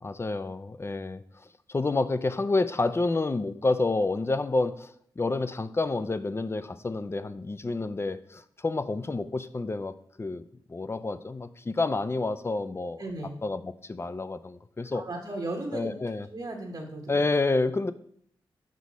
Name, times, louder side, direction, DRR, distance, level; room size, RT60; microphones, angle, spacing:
voice 1, 0.0-1.2 1.7-10.4 10.7-13.0 13.4-15.0 15.7-16.3 17.1-17.9, left 3 dB, 25° left, 0.4 m, -29 dB
voice 2, 13.0-13.3 14.9-15.9 16.3-17.2, right 2 dB, 50° right, 1.1 m, -35 dB
6.3 x 4.9 x 4.1 m
cardioid pair, 60°, 9 cm